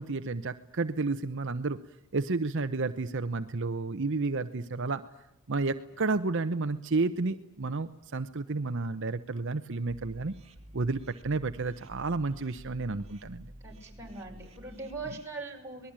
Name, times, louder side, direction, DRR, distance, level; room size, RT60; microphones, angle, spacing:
voice 1, 0.0-1.8 2.1-5.0 5.5-10.3 10.7-13.5, right 3 dB, 55° right, 9 dB, 0.8 m, -31 dB
sound 1, 9.9-15.2, right 1 dB, 30° right, 2.9 m, -50 dB
voice 2, 13.6-15.9, right 3 dB, 10° right, -1 dB, 5.6 m, -41 dB
25.5 x 20.0 x 8.8 m, 0.91 s
head